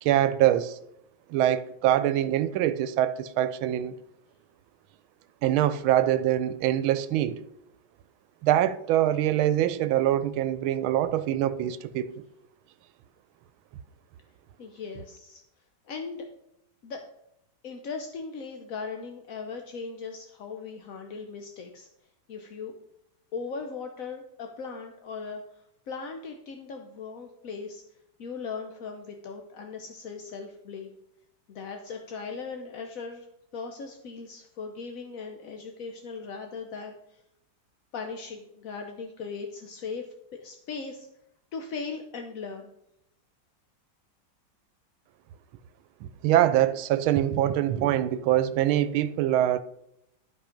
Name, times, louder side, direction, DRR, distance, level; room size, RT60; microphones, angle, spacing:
voice 1, 0.0-0.8 1.3-3.9 5.4-7.4 8.4-12.1 46.0-49.6, right 12 dB, 85° right, 1.4 m, -24 dB
voice 2, 14.6-15.4 15.9-16.2 16.8-17.0 17.6-21.9 22.3-22.7 23.3-25.4 25.9-27.8 28.2-31.0 31.5-33.3 33.5-37.2 37.9-41.1 41.5-42.7, left 5 dB, 60° left, 0.9 m, -38 dB
11.5 x 5.7 x 5.1 m
omnidirectional pair, 2.2 m